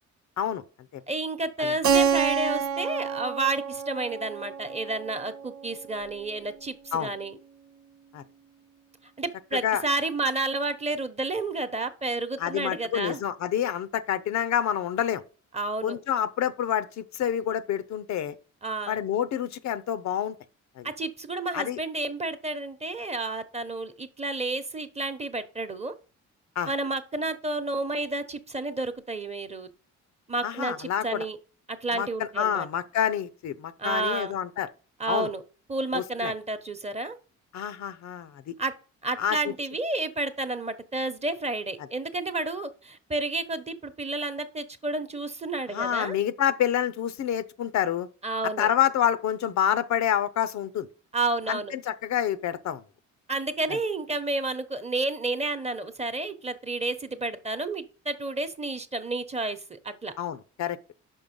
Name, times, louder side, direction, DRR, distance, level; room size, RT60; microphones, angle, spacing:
voice 1, 1.1-7.4 9.2-13.2 15.5-16.0 18.6-19.0 20.8-26.0 26.7-29.7 30.3-31.4 31.7-32.7 33.8-34.3 35.0-35.4 35.7-37.2 38.6-38.7 39.0-46.2 48.2-48.7 51.1-51.7 53.3-60.1, right 2 dB, 20° right, 0.9 m, -31 dB
Keyboard (musical), 1.8-6.4, right 7 dB, 70° right, 0.9 m, -28 dB
voice 2, 12.4-15.2 15.8-18.3 18.9-20.4 20.8-20.9 21.5-21.8 26.6-26.7 30.4-31.2 31.9-32.1 32.4-34.7 35.1-35.3 35.9-36.3 37.5-38.5 39.2-39.5 45.7-48.1 48.6-50.9 51.5-52.8 60.2-60.8, left 10 dB, 65° left, 0.6 m, -28 dB
5.5 x 5.4 x 5.3 m
cardioid pair, 90°, 30 cm